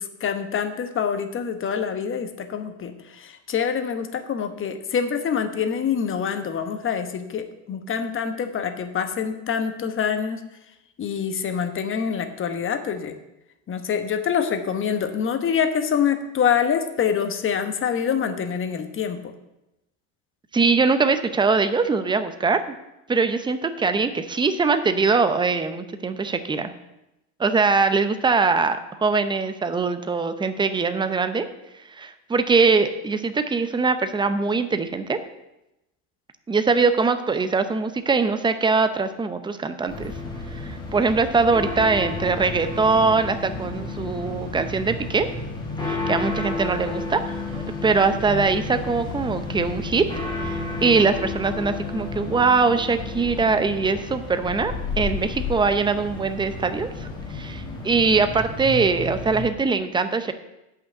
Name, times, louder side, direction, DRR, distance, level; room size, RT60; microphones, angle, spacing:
voice 1, 0.0-10.4 11.0-13.1 13.7-19.3, left 7 dB, 30° left, 8 dB, 1.1 m, -25 dB
voice 2, 20.5-22.6 23.1-26.7 27.4-31.5 32.0-35.2 36.5-40.1 40.5-45.3 45.8-50.1 50.4-57.1 57.3-60.3, right 4 dB, 10° right, 9 dB, 0.7 m, -22 dB
sound 1, 39.9-59.5, left 3 dB, 10° left, 1.9 m, -32 dB
8.3 x 5.7 x 7.8 m, 0.93 s
supercardioid pair, 110°, 41 cm